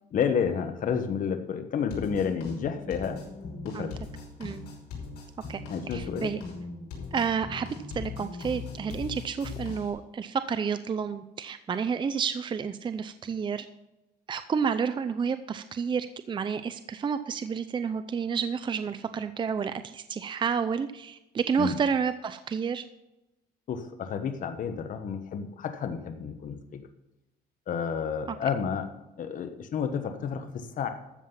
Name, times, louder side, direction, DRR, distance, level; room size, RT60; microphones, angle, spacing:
voice 1, 0.1-3.2 3.6-4.0 5.7-6.3 21.6-21.8 23.7-26.8 27.7-28.9 29.2-30.9, left 7 dB, 50° left, 7 dB, 1.1 m, -30 dB
sound 1, 1.9-9.9, left 4 dB, 80° left, 5.3 m, -39 dB
voice 2, 5.9-6.4 7.1-7.7 7.9-13.7 14.3-22.8 28.3-28.4, right 6 dB, 30° right, 11 dB, 0.6 m, -30 dB
13.5 x 7.5 x 5.6 m, 0.94 s
cardioid pair, 110°, 17 cm